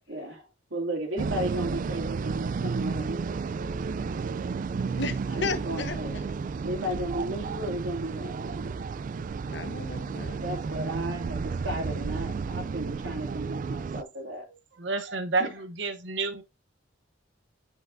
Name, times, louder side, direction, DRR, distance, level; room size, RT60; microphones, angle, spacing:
voice 1, 0.1-3.5 3.8-4.4 5.3-8.8 10.4-14.5 15.4-15.5, right 1 dB, 85° right, 2.5 m, -35 dB
sound 1, 1.2-14.0, right 5 dB, 45° right, 0.3 m, -32 dB
voice 2, 5.0-6.2 9.5-10.4, left 4 dB, 70° left, 1.0 m, -34 dB
voice 3, 14.8-16.4, right 3 dB, 70° right, 0.9 m, -29 dB
8.1 x 5.8 x 2.6 m
head